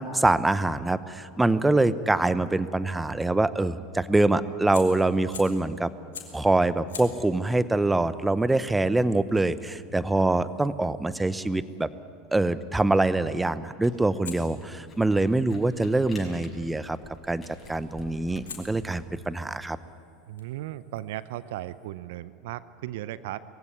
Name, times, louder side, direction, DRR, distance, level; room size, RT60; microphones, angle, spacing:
voice 1, 0.0-5.9 6.3-11.9 12.3-17.0 17.3-17.4 17.7-19.8, right 2 dB, 10° right, 15 dB, 0.8 m, -24 dB
Fire, 4.7-5.7 6.1-6.5 6.9-11.8 14.2-16.3 17.6-17.9 18.5-21.9, left 7 dB, 80° left, 2.6 m, -48 dB
Camera, 13.8-19.0, left 1 dB, 20° left, 6.5 m, -49 dB
voice 2, 20.3-23.4, right 14 dB, 65° right, 16 dB, 0.6 m, -36 dB
21.0 x 15.5 x 9.7 m, 2.4 s
hypercardioid pair, 80°, 0 cm